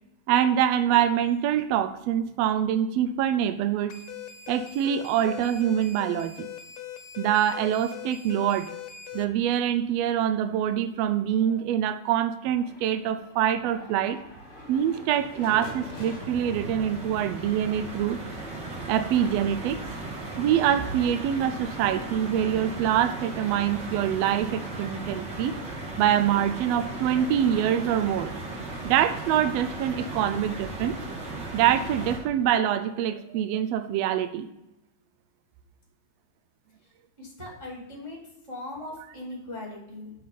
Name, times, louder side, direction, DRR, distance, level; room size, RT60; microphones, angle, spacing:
voice 1, 0.3-4.0 4.5-6.5 7.2-8.7 9.1-14.2 14.7-18.2 18.9-19.8 20.4-25.5 26.0-28.3 28.8-31.0 31.5-34.5, right 10 dB, 80° right, 11 dB, 1.5 m, -25 dB
sound 1, 3.9-9.2, left 9 dB, 75° left, 1.8 m, -41 dB
sound 2, 12.4-20.2, left 2 dB, 30° left, 1.7 m, -45 dB
sound 3, 14.2-32.2, right 2 dB, 40° right, 2.1 m, -37 dB
voice 2, 37.2-38.2 38.5-40.1, left 1 dB, 10° right, -2 dB, 1.7 m, -39 dB
6.3 x 5.7 x 6.8 m, 0.91 s
omnidirectional pair, 3.4 m